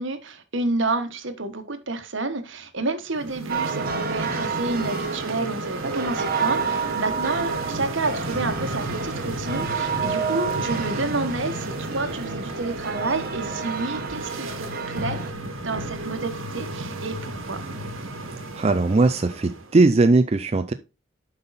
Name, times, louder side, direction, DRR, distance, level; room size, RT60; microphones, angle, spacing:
voice 1, 0.0-15.2 15.6-17.6, right 3 dB, 65° right, 1.2 m, -29 dB
sound 1, 3.1-19.7, right 2 dB, 85° right, 1.5 m, -33 dB
sound 2, 3.5-15.3, right 5 dB, 45° right, 1.1 m, -30 dB
voice 2, 18.5-20.7, right 3 dB, 30° right, 0.4 m, -19 dB
7.9 x 5.5 x 4.1 m
head